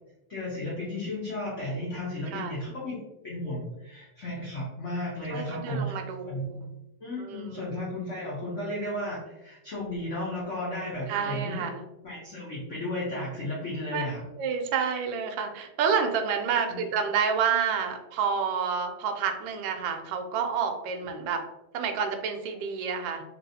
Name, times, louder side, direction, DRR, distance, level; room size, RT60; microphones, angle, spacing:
voice 1, 0.3-3.0 3.2-6.0 6.2-6.6 7.0-11.6 12.0-14.2 16.7-16.8, left 1 dB, 60° left, -7 dB, 0.7 m, -34 dB
voice 2, 5.3-6.7 7.2-7.7 11.1-11.8 13.9-14.0 14.4-21.4 21.7-23.2, right 6 dB, 75° right, 5 dB, 1.1 m, -29 dB
3.1 x 2.9 x 2.6 m, 0.93 s
omnidirectional pair, 2.3 m